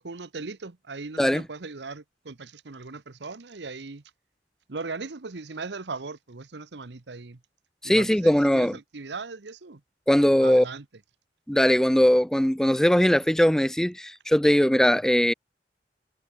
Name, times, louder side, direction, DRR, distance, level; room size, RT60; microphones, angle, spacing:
voice 1, 0.0-4.0 4.7-7.4 7.8-9.8 10.4-10.8, right 3 dB, 70° right, 1.0 m, -38 dB
voice 2, 7.8-8.7 10.1-10.6 11.5-15.3, equal, 5° left, 0.4 m, -20 dB
head